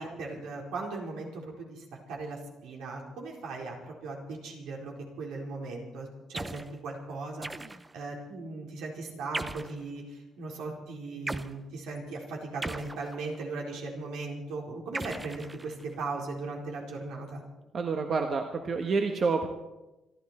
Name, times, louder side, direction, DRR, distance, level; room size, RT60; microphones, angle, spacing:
voice 1, 0.0-7.6 7.9-17.4, right 3 dB, 85° right, -1 dB, 4.4 m, -38 dB
sound 1, 6.3-6.7 7.4-8.0 9.3-9.8 11.3-11.6 12.6-13.5 14.9-16.0, right 2 dB, 15° right, 0.7 m, -38 dB
voice 2, 17.7-19.5, right 4 dB, 45° right, 4 dB, 1.4 m, -28 dB
26.5 x 12.0 x 4.4 m, 1.0 s
cardioid pair, 105°, 0 cm